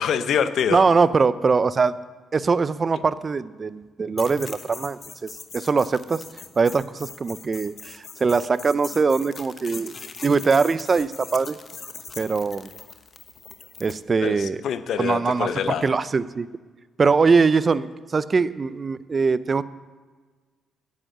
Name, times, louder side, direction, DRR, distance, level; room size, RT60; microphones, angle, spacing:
voice 1, 0.0-0.8 14.2-15.9, left 7 dB, 70° left, 11 dB, 0.7 m, -25 dB
voice 2, 0.7-1.9 2.3-6.2 6.6-11.6 12.2-12.7 13.8-14.6 15.0-15.5 15.8-16.5 17.0-19.6, right 4 dB, 35° right, 16 dB, 0.4 m, -22 dB
sound 1, 4.2-14.0, left 5 dB, 40° left, 1.0 m, -41 dB
9.4 x 7.8 x 8.8 m, 1.4 s
cardioid pair, 90°, 0 cm